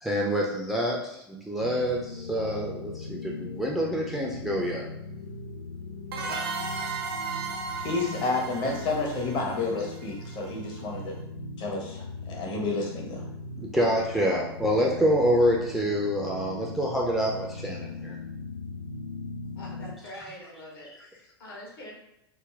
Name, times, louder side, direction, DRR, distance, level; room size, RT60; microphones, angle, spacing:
voice 1, 0.0-4.9 13.6-18.2, equal, ahead, -2 dB, 0.5 m, -26 dB
sound 1, 1.6-20.0, left 2 dB, 85° left, 0.4 m, -39 dB
sound 2, 6.1-10.6, right 5 dB, 65° right, 0.6 m, -35 dB
voice 2, 7.8-11.2 11.6-13.3, left 3 dB, 35° left, -1 dB, 0.9 m, -30 dB
voice 3, 19.5-21.9, left 1 dB, 60° left, -2 dB, 1.3 m, -44 dB
3.9 x 2.1 x 3.5 m, 0.81 s
figure-of-eight pair, 90°, 14 cm